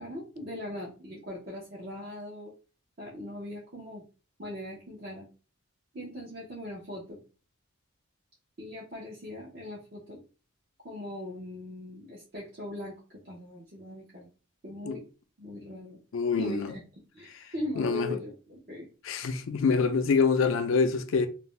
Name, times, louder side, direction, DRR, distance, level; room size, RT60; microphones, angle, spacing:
voice 1, 0.0-2.5 3.0-4.0 4.4-5.3 5.9-7.2 8.6-10.2 10.8-13.0 13.2-14.3 14.6-15.0 15.4-16.0 16.4-16.8 17.1-18.9, left 1 dB, 50° right, 0.7 m, -40 dB
voice 2, 16.1-16.7 17.8-18.2 19.1-21.3, left 5 dB, 75° left, 0.4 m, -25 dB
2.5 x 2.1 x 3.1 m
head